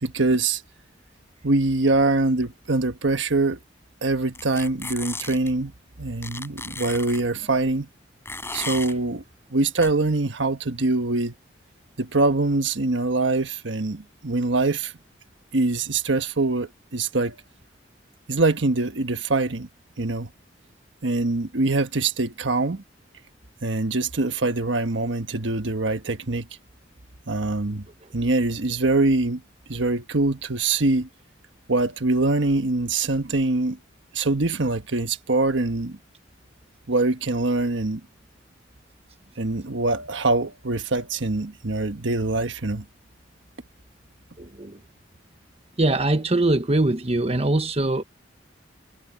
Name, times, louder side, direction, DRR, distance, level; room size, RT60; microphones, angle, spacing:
voice 1, 0.0-0.6 1.4-3.6 4.0-5.7 6.0-7.9 8.5-9.2 9.5-11.3 12.0-14.9 15.5-17.4 18.3-19.7 20.0-20.3 21.0-22.8 23.6-26.5 27.3-27.8 28.1-29.4 29.7-31.1 31.7-33.8 34.1-36.0 36.9-38.0 39.4-42.8, right 2 dB, 80° right, 1.3 m, -23 dB
sound 1, 4.3-5.5 6.2-7.2 8.3-8.9 9.8-9.9, left 3 dB, 15° left, 6.5 m, -34 dB
voice 2, 44.4-44.8 45.8-48.0, right 2 dB, 35° right, 1.2 m, -22 dB
head